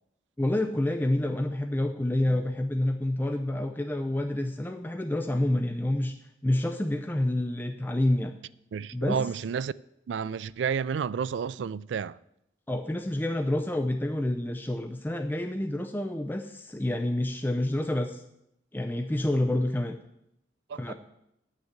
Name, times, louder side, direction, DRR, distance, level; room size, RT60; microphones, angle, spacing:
voice 1, 0.4-6.2 6.4-8.3 8.9-9.2 12.7-18.2 18.7-20.0 20.8-20.9, left 1 dB, 10° left, 0.5 m, -28 dB
voice 2, 8.7-9.7 10.1-12.2 20.7-20.9, right 6 dB, 75° right, 0.3 m, -31 dB
9.6 x 6.5 x 7.3 m
head